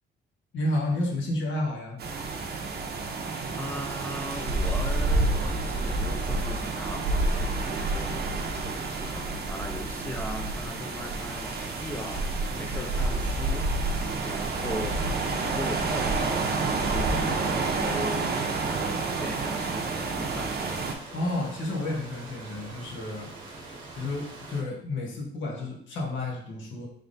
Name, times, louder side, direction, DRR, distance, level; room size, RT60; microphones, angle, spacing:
voice 1, 0.5-2.0 21.1-23.3 23.6-26.9, left 1 dB, 75° left, -1 dB, 1.1 m, -31 dB
leaves-penyfridd, 2.0-20.9, right 3 dB, 55° right, 0.6 m, -29 dB
voice 2, 3.5-15.1 15.4-20.6, equal, 10° left, 1 dB, 0.4 m, -39 dB
sound 1, 10.8-24.6, right 2 dB, 90° right, 1.0 m, -44 dB
3.7 x 3.4 x 2.6 m, 0.65 s
cardioid pair, 90°, 20 cm